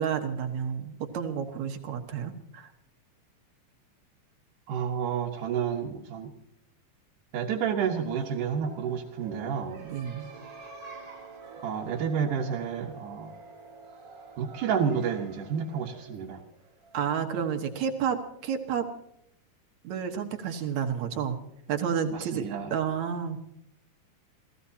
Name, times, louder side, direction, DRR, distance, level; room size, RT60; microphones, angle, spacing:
voice 1, 0.0-2.7 9.8-10.3 16.9-18.9 19.8-21.4 21.7-22.4 22.7-23.4, right 7 dB, 70° right, 5 dB, 2.6 m, -30 dB
voice 2, 4.7-6.3 7.3-9.8 11.6-13.3 14.4-16.4 22.1-22.7, right 7 dB, 90° right, -2 dB, 2.9 m, -30 dB
sound 1, 7.9-17.4, right 4 dB, 35° right, 2.9 m, -47 dB
29.0 x 16.0 x 2.9 m, 0.75 s
omnidirectional pair, 3.5 m